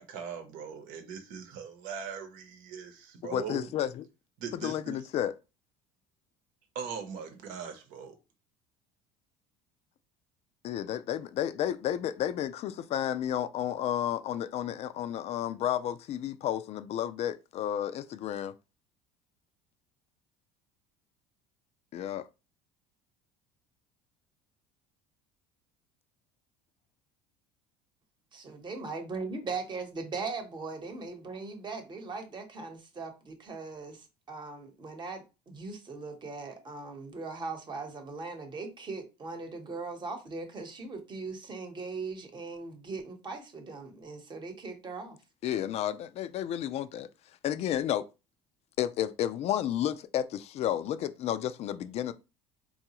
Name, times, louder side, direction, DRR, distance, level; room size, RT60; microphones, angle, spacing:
voice 1, 0.0-3.7 4.4-5.0 6.7-8.2, right 6 dB, 70° right, 0.9 m, -40 dB
voice 2, 3.2-4.0 4.5-5.3 10.6-18.5 21.9-22.3 45.4-47.1 47.4-48.1 48.8-52.1, left 11 dB, 45° left, 0.4 m, -32 dB
voice 3, 28.3-45.2, right 4 dB, 30° right, 1.0 m, -39 dB
3.9 x 2.3 x 2.9 m
supercardioid pair, 95°, 14 cm